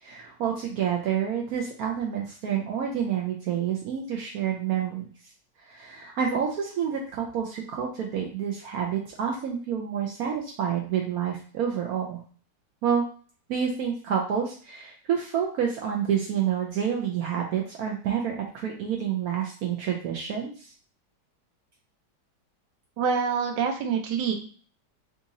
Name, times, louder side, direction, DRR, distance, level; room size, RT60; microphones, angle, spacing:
voice 1, 0.0-5.1 5.6-12.2 12.8-13.0 13.5-20.7, right 8 dB, 70° right, 0 dB, 1.0 m, -28 dB
voice 2, 23.0-24.3, right 6 dB, 85° right, 4 dB, 1.3 m, -26 dB
3.6 x 2.9 x 2.6 m, 0.43 s
omnidirectional pair, 1.9 m